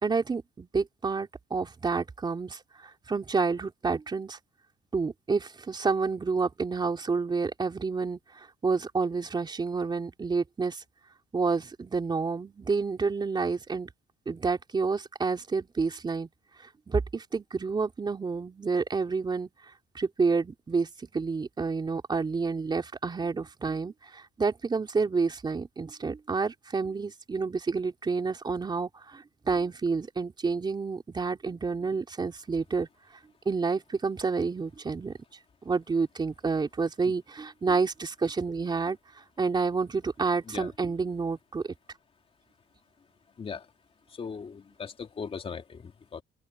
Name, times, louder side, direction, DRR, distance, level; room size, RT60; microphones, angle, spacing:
voice 1, 0.0-4.4 4.9-10.8 11.3-13.9 14.3-16.3 16.6-19.5 19.9-20.9 21.1-32.9 33.5-35.1 35.6-39.0 39.4-41.7, right 4 dB, 25° right, 3.6 m, -29 dB
voice 2, 44.1-46.2, left 6 dB, 35° left, 3.2 m, -39 dB
open air
cardioid pair, 110°, 17 cm